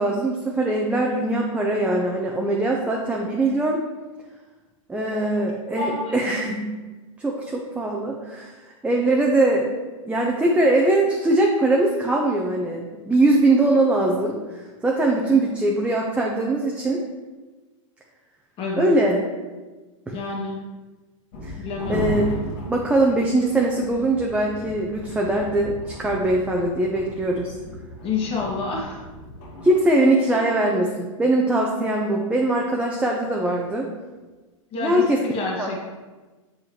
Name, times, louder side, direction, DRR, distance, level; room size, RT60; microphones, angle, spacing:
voice 1, 0.0-3.8 4.9-6.7 7.2-8.5 8.8-9.7 10.1-17.0 18.8-19.2 20.1-20.2 21.4-21.5 21.9-22.3 22.7-27.5 29.6-33.9 34.7-35.2 35.6-35.7, right 2 dB, 5° right, -2 dB, 0.7 m, -21 dB
voice 2, 5.8-6.6 18.6-18.9 20.1-20.6 21.6-22.1 28.0-29.0 34.7-35.8, left 4 dB, 35° left, -2 dB, 1.7 m, -29 dB
sound 1, 21.3-29.7, left 1 dB, 50° left, 1.8 m, -35 dB
7.2 x 5.3 x 3.0 m, 1.2 s
hypercardioid pair, 120°, 17 cm